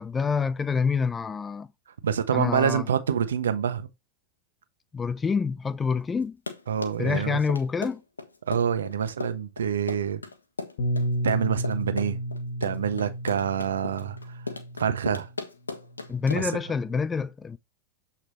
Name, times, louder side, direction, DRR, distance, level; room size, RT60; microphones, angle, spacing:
voice 1, 0.0-1.7 2.3-2.9 4.9-6.4 7.0-8.0 16.1-17.6, left 5 dB, 15° left, 0.5 m, -27 dB
voice 2, 2.0-3.9 6.7-7.4 8.5-10.2 11.2-12.2 12.6-14.2 14.8-15.3 16.3-16.5, right 8 dB, 65° right, 1.2 m, -26 dB
Run, 6.2-16.6, left 3 dB, 80° left, 1.3 m, -36 dB
Bass guitar, 10.8-15.3 16.1-17.0, right 1 dB, 55° left, 1.2 m, -32 dB
8.0 x 5.8 x 3.0 m
figure-of-eight pair, 90°, 0 cm